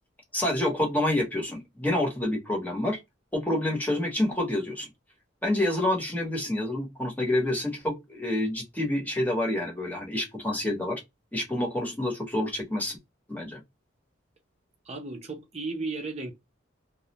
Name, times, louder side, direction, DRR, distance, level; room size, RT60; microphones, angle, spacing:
voice 1, 0.3-3.0 3.3-4.9 5.4-11.0 11.3-13.0 13.3-13.6, left 1 dB, 10° left, 0.9 m, -28 dB
voice 2, 14.8-16.3, right 3 dB, 35° right, 0.6 m, -34 dB
2.4 x 2.1 x 2.8 m
head